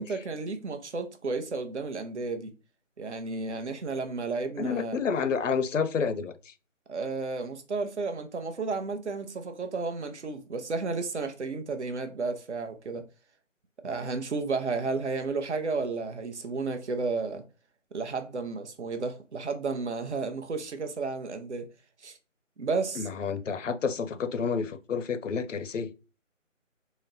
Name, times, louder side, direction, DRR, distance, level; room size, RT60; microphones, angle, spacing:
voice 1, 0.0-2.5 3.0-5.0 6.9-13.1 13.8-17.4 17.9-21.7 22.0-22.2 22.6-23.1, right 4 dB, 60° right, 0.8 m, -32 dB
voice 2, 4.6-6.5 23.0-25.9, left 5 dB, 70° left, 0.6 m, -29 dB
4.1 x 2.1 x 3.9 m
figure-of-eight pair, 160°, 40 cm